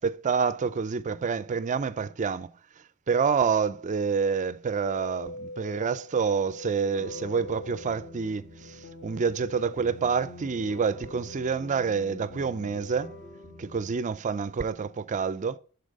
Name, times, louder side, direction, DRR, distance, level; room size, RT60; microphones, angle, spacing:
voice 1, 0.0-2.5 3.1-13.2 13.6-15.6, right 5 dB, 35° right, 0.4 m, -28 dB
sound 1, 4.8-13.3, left 1 dB, 25° left, 0.6 m, -44 dB
sound 2, 6.9-13.9, left 2 dB, 55° left, 2.5 m, -47 dB
12.0 x 4.1 x 5.1 m
head